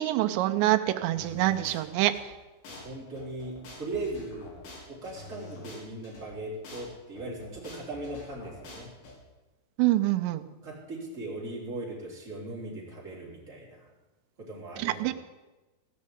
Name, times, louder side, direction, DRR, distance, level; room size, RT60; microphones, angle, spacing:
voice 1, 0.0-2.1 9.8-10.4 14.8-15.1, right 15 dB, 90° right, 7 dB, 3.0 m, -25 dB
sound 1, 1.2-2.2 2.7-2.8 3.2-6.2 6.7-6.8 7.2-9.1, left 2 dB, 85° left, 5.4 m, -46 dB
voice 2, 2.7-4.5 4.9-8.9 10.6-13.9 14.4-15.1, right 2 dB, 20° right, -5 dB, 3.6 m, -39 dB
17.0 x 6.5 x 8.6 m, 1.1 s
omnidirectional pair, 5.0 m